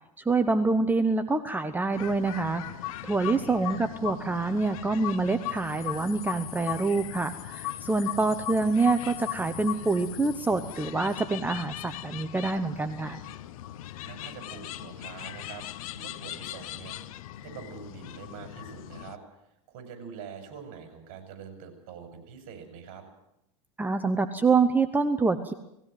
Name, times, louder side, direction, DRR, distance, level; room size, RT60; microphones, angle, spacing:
voice 1, 0.2-13.2 23.8-25.5, right 3 dB, 10° right, 9 dB, 1.0 m, -26 dB
sound 1, 1.9-19.2, left 14 dB, 75° left, 1.1 m, -39 dB
voice 2, 3.3-3.8 14.0-15.6 15.9-17.0 17.4-19.2 19.7-23.0, right 6 dB, 55° right, 6 dB, 6.3 m, -45 dB
19.5 x 16.0 x 9.4 m, 0.83 s
supercardioid pair, 125°, 18 cm